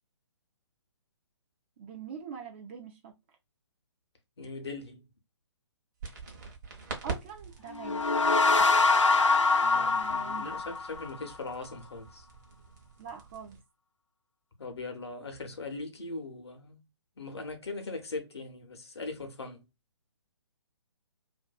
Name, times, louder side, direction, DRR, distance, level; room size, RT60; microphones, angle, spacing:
voice 1, 1.8-3.1 7.0-8.1 9.6-10.5 13.0-13.6, right 7 dB, 25° right, 0.4 m, -43 dB
voice 2, 4.4-5.1 9.7-12.3 14.6-16.8 17.2-19.6, left 3 dB, 60° left, 0.8 m, -40 dB
sound 1, 6.0-13.6, right 4 dB, 40° right, 0.8 m, -45 dB
sound 2, 7.7-11.2, left 3 dB, 85° left, 0.5 m, -24 dB
2.6 x 2.2 x 2.3 m
figure-of-eight pair, 135°, 15 cm